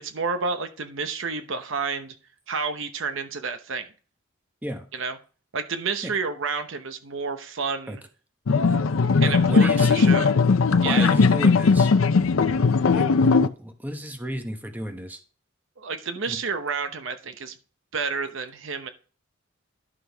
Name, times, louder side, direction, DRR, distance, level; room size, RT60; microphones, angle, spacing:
voice 1, 0.0-2.2 2.5-3.9 4.9-5.2 5.5-8.0 9.2-10.3 10.8-11.2 15.8-17.5 17.9-18.9, right 5 dB, 65° right, 9 dB, 0.9 m, -30 dB
sound 1, 8.5-13.5, left 4 dB, 90° left, 0.6 m, -19 dB
voice 2, 9.2-10.1 10.8-11.9 12.9-15.2 16.3-16.4, equal, 10° right, 5 dB, 1.0 m, -33 dB
11.0 x 6.1 x 3.5 m, 0.38 s
head